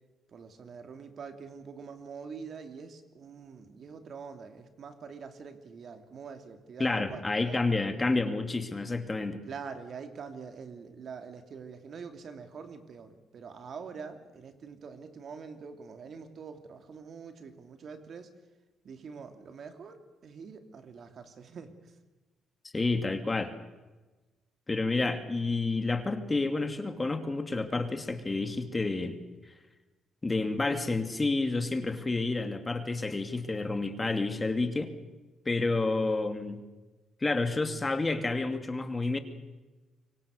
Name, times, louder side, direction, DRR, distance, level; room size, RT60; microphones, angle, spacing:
voice 1, 0.3-7.7 9.4-18.3 18.8-22.0, right 5 dB, 55° right, 7 dB, 2.9 m, -45 dB
voice 2, 6.8-9.4 22.7-23.5 24.7-29.2 30.2-34.9 35.5-36.6 37.2-39.2, left 3 dB, 20° left, 8 dB, 2.6 m, -29 dB
25.5 x 24.0 x 6.6 m, 1.2 s
cardioid pair, 90°, 0 cm